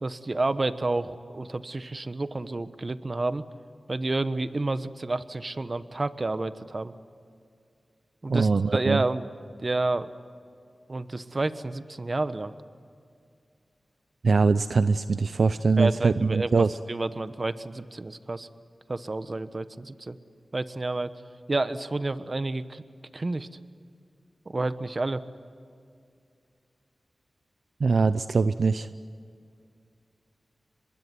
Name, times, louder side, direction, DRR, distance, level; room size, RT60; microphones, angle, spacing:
voice 1, 0.0-3.4 3.9-6.9 8.2-9.3 9.6-10.1 10.9-12.5 15.8-18.5 18.9-20.2 20.5-21.1 21.5-22.8 23.1-23.5 24.5-25.2, right 2 dB, 45° right, 12 dB, 1.2 m, -30 dB
voice 2, 8.3-9.0 14.2-16.8 27.8-28.9, right 4 dB, 75° right, 13 dB, 0.6 m, -22 dB
25.0 x 21.5 x 9.4 m, 2.4 s
cardioid pair, 40°, 0 cm